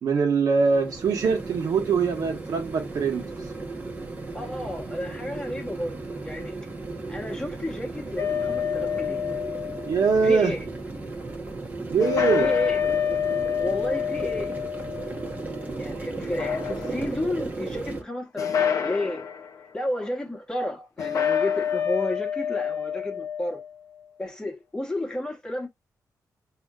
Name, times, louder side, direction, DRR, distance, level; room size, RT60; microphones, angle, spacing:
voice 1, 0.0-3.3 9.9-10.5 11.9-12.5, right 5 dB, 65° right, 1.3 m, -23 dB
sound 1, 0.6-18.0, right 3 dB, 25° right, 1.1 m, -35 dB
voice 2, 4.3-6.5 7.1-9.3 10.2-10.6 12.4-12.8 13.6-14.6 15.8-19.2 19.7-23.6 24.2-25.7, left 1 dB, 10° left, 1.3 m, -32 dB
sound 2, 8.2-10.2 12.0-15.7 16.2-17.2 18.4-19.5 21.0-23.7, left 8 dB, 55° left, 0.6 m, -27 dB
6.0 x 2.9 x 2.5 m
wide cardioid pair, 170°, 7 cm